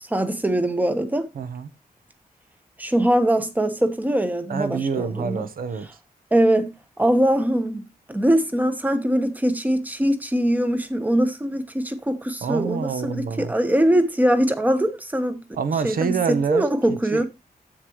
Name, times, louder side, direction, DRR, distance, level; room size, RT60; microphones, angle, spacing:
voice 1, 0.0-1.3 2.8-5.5 6.3-7.8 8.1-15.4 15.8-17.3, right 1 dB, 10° right, 1.0 m, -22 dB
voice 2, 1.3-1.7 4.5-5.9 12.4-13.5 15.5-17.3, right 6 dB, 70° right, 1.0 m, -27 dB
10.0 x 8.1 x 3.1 m
wide cardioid pair, 180°, 16 cm